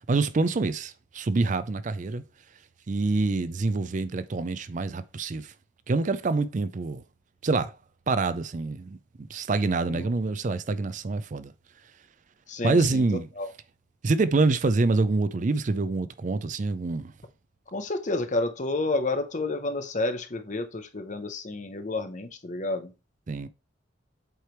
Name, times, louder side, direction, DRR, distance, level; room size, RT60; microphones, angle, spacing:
voice 1, 0.1-2.2 2.9-5.5 5.9-7.0 7.4-7.7 8.1-9.0 9.3-11.5 12.6-13.3 14.0-17.1 23.3-23.5, right 3 dB, 40° right, 0.4 m, -26 dB
voice 2, 12.5-13.0 13.4-13.5 17.7-22.9, left 2 dB, 40° left, 0.8 m, -30 dB
7.9 x 3.3 x 4.5 m
head